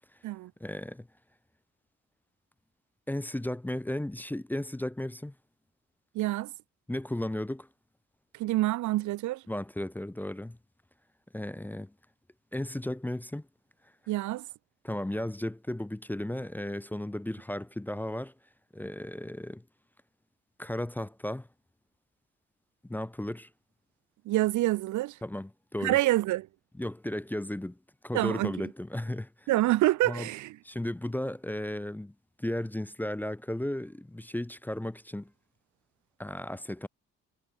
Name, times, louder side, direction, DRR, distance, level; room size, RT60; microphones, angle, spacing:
voice 1, 0.6-1.1 3.1-5.3 6.9-7.7 9.5-10.6 11.3-11.9 12.5-13.5 14.8-18.3 18.7-19.6 20.6-21.5 22.8-23.5 25.2-26.0 26.8-27.8 28.0-29.5 30.0-30.3 30.6-35.3 36.2-36.9, left 1 dB, 5° left, 0.5 m, -35 dB
voice 2, 6.1-6.5 8.3-9.4 14.1-14.4 24.3-25.2 25.8-26.5 28.1-28.5 29.5-30.6, right 17 dB, 75° right, 0.6 m, -27 dB
cardioid pair, 90°, 30 cm